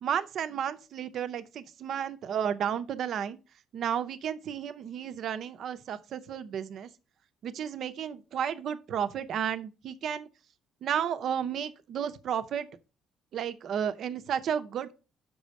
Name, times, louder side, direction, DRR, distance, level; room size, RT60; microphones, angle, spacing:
voice 1, 0.0-3.4 3.7-6.9 7.4-10.3 10.8-12.7 13.3-14.9, right 8 dB, 65° right, 0.7 m, -32 dB
6.2 x 5.1 x 5.3 m
hypercardioid pair, 50°, 0 cm